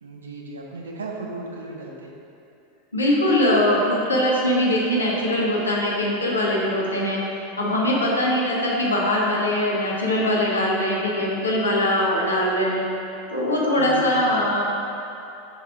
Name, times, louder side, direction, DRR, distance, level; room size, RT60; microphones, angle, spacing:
voice 1, 0.0-2.1 13.8-14.3, right 2 dB, 75° right, 0 dB, 0.7 m, -35 dB
voice 2, 2.9-7.2 7.6-12.8 13.3-14.6, left 1 dB, 80° left, -4 dB, 1.0 m, -21 dB
7.4 x 3.4 x 3.7 m, 2.8 s
figure-of-eight pair, 85°, 0 cm